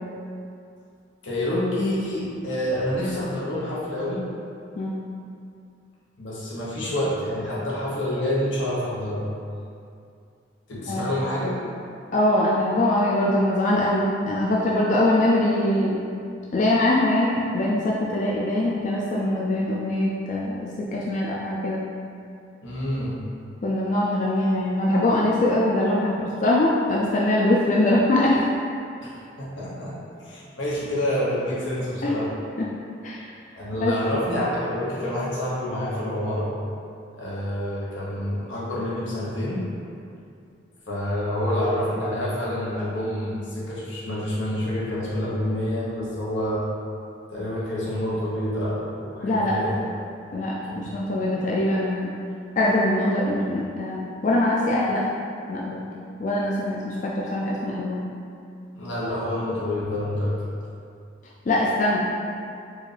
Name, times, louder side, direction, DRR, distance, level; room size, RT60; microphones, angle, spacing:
voice 1, 1.2-4.3 6.2-9.2 10.7-11.6 22.6-23.2 29.0-29.9 30.2-32.3 33.5-36.5 37.2-39.7 40.9-46.6 47.3-49.8 50.7-50.9 58.7-60.4, left 1 dB, 85° left, -7 dB, 1.1 m, -27 dB
voice 2, 12.1-16.0 16.5-21.8 23.6-26.1 26.4-28.4 32.0-32.1 32.6-32.7 33.0-33.2 33.8-33.9 49.2-49.5 50.3-52.1 52.6-55.0 55.5-55.8 56.2-58.0 61.5-62.0, left 1 dB, 40° left, -5 dB, 0.3 m, -22 dB
4.6 x 2.5 x 3.3 m, 2.4 s
head